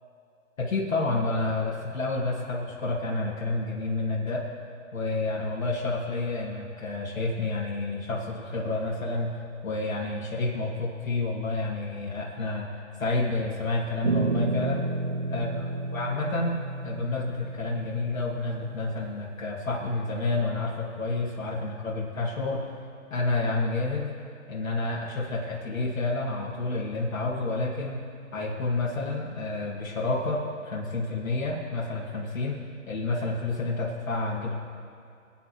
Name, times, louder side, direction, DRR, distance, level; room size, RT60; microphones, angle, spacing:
voice 1, 0.6-4.4 4.9-9.3 9.6-12.7 13.0-14.8 15.3-15.5 15.9-22.7 23.1-24.1 24.5-28.0 28.3-32.6 32.9-34.5, left 2 dB, 70° left, -5 dB, 2.4 m, -29 dB
sound 1, 14.0-19.0, right 3 dB, 40° right, 0.4 m, -31 dB
27.0 x 9.1 x 3.2 m, 2.4 s
hypercardioid pair, 150°, 42 cm